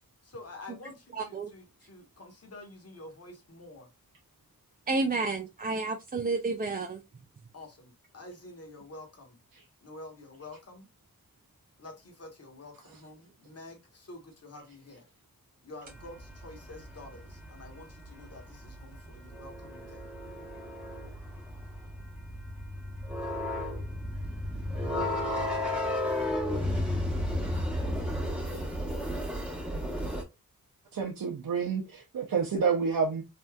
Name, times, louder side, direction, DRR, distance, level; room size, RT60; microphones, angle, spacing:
voice 1, 0.2-3.9 5.7-5.8 7.5-9.4 9.8-10.9 11.8-15.1 15.6-20.1, left 2 dB, 45° left, 1.2 m, -48 dB
voice 2, 1.2-1.5 4.9-7.0, right 3 dB, 25° right, 0.4 m, -30 dB
sound 1, 16.0-30.2, left 1 dB, 5° right, 1.1 m, -33 dB
voice 3, 30.9-33.2, right 5 dB, 70° right, 0.6 m, -29 dB
3.4 x 2.6 x 2.2 m
wide cardioid pair, 65°, 35 cm